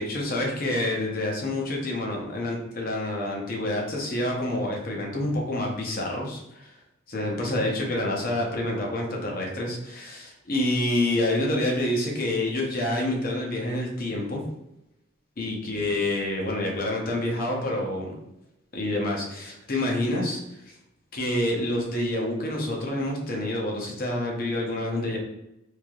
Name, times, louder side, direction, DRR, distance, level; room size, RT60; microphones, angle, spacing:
voice 1, 0.0-6.8 7.1-14.4 15.4-18.1 18.7-20.6 21.1-25.2, left 1 dB, 45° left, 0 dB, 0.6 m, -28 dB
3.2 x 2.6 x 2.3 m, 0.86 s
head